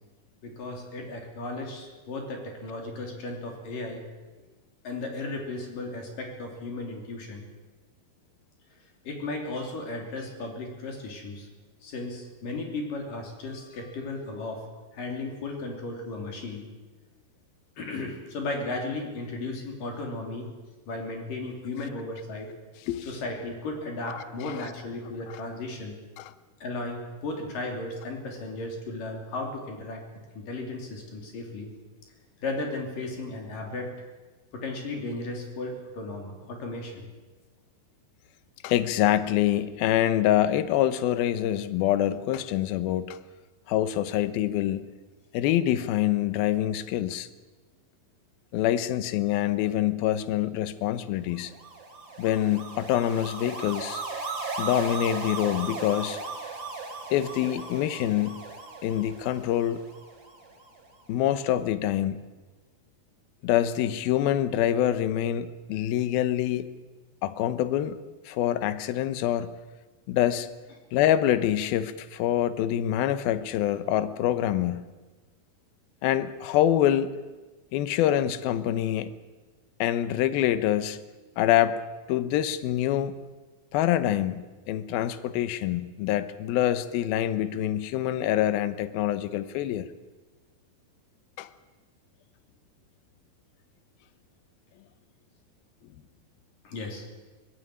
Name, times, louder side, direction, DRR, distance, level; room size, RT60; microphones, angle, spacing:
voice 1, 0.4-4.1 4.8-7.4 9.0-11.5 11.8-14.7 14.9-16.7 17.8-20.5 20.9-22.5 23.1-26.0 26.6-30.0 30.3-31.7 32.4-33.9 34.5-37.0 96.6-97.1, left 2 dB, 60° left, 2 dB, 4.8 m, -35 dB
voice 2, 24.1-24.7 26.2-26.3 38.6-43.2 43.7-44.9 45.3-47.3 48.5-51.5 52.2-54.0 54.6-56.2 57.1-58.5 58.8-59.8 61.1-62.2 63.4-66.7 67.2-68.0 68.3-69.5 70.1-70.5 70.9-74.9 76.0-77.2 77.7-79.2 79.8-81.0 81.4-81.8 82.1-83.1 83.7-89.9 91.4-91.5, left 12 dB, 80° left, 13 dB, 2.7 m, -25 dB
sound 1, 51.4-60.7, right 3 dB, 30° right, 3.4 m, -37 dB
19.5 x 16.0 x 9.9 m, 1.2 s
omnidirectional pair, 4.4 m